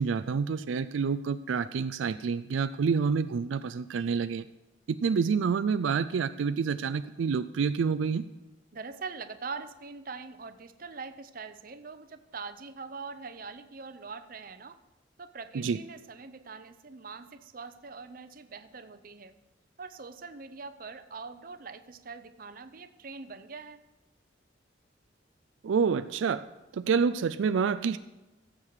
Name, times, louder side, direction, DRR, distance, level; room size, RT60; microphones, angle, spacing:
voice 1, 0.0-4.5 4.9-8.2 15.5-15.8 25.6-26.4 26.7-28.0, right 5 dB, 90° right, 11 dB, 0.4 m, -28 dB
voice 2, 8.7-14.8 15.2-19.4 19.8-23.8, right 4 dB, 50° right, 11 dB, 0.7 m, -43 dB
15.5 x 7.5 x 4.8 m, 1.1 s
head